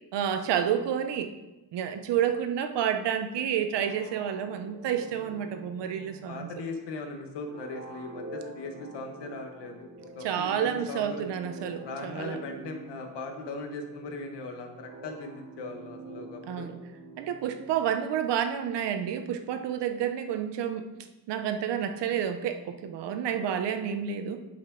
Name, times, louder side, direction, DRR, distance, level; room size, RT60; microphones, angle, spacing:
voice 1, 0.1-1.3 1.7-6.5 10.2-12.4 16.5-16.7 17.2-20.9 21.3-24.4, right 9 dB, 85° right, 7 dB, 0.9 m, -29 dB
sound 1, 3.8-18.3, right 2 dB, 30° right, 2.4 m, -47 dB
voice 2, 6.3-11.2 11.6-16.7, left 3 dB, 80° left, 4 dB, 1.4 m, -39 dB
10.0 x 5.4 x 3.9 m, 1.0 s
cardioid pair, 155°, 41 cm